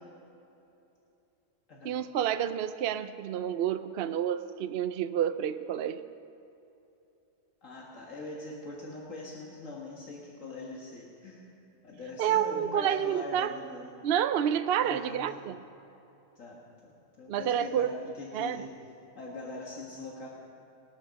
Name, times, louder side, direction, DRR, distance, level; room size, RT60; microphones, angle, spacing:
voice 1, 1.8-6.0 12.2-13.5 14.0-15.6 17.3-17.9 18.3-18.6, right 9 dB, 60° right, 10 dB, 0.7 m, -29 dB
voice 2, 7.6-11.5 11.8-13.9 14.8-15.2 16.4-18.7 19.2-20.3, left 2 dB, 80° left, -3 dB, 2.0 m, -42 dB
19.5 x 8.6 x 6.3 m, 2.9 s
omnidirectional pair, 1.3 m